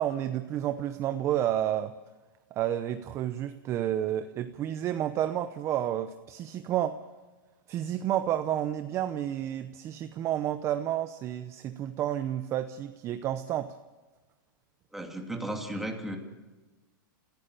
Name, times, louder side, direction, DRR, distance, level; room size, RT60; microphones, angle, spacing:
voice 1, 0.0-1.9 2.5-7.0 7.7-13.8, right 11 dB, 25° right, 11 dB, 0.7 m, -30 dB
voice 2, 14.9-16.2, right 1 dB, ahead, 2 dB, 2.6 m, -35 dB
27.5 x 16.5 x 6.8 m, 1.2 s
supercardioid pair, 155°, 11 cm